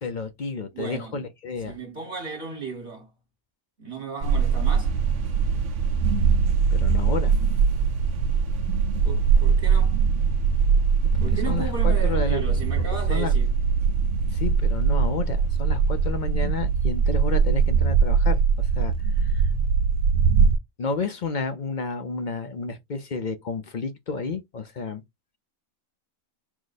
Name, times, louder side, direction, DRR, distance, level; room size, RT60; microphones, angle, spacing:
voice 1, 0.0-1.7 6.7-7.3 11.5-12.4 13.1-13.3 14.3-18.9 19.2-19.4 20.8-25.0, left 4 dB, 50° left, 0.6 m, -31 dB
voice 2, 0.7-1.2 1.6-3.1 3.8-5.0 9.0-10.0 11.2-13.5, right 5 dB, 45° right, 1.4 m, -35 dB
sound 1, 4.2-20.6, right 6 dB, 65° right, 0.9 m, -21 dB
4.8 x 2.1 x 4.0 m
omnidirectional pair, 1.4 m